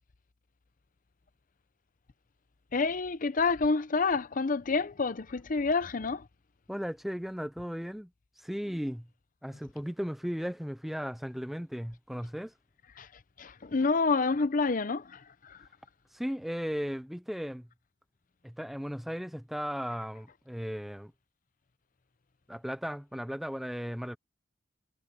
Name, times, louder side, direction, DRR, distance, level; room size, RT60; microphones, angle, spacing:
voice 1, 2.7-6.2 13.0-13.1 13.4-15.6, left 4 dB, 45° left, 0.7 m, -28 dB
voice 2, 6.7-8.1 8.4-9.1 9.4-12.5 16.1-17.7 18.4-21.1 22.5-24.2, equal, ahead, 0.4 m, -36 dB
head